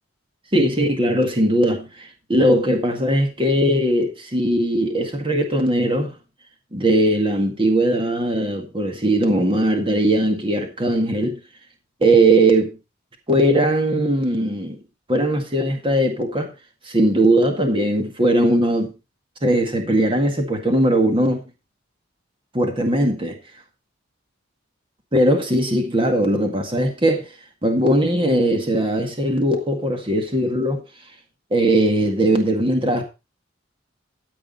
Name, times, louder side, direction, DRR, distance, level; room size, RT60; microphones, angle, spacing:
voice 1, 0.5-6.1 6.7-11.4 12.0-12.7 13.3-14.8 15.1-16.5 16.9-18.9 19.4-21.4 22.5-23.4 25.1-27.3 27.6-30.8 31.5-33.0, right 1 dB, 25° right, 1.9 m, -19 dB
13.5 x 7.6 x 4.2 m
head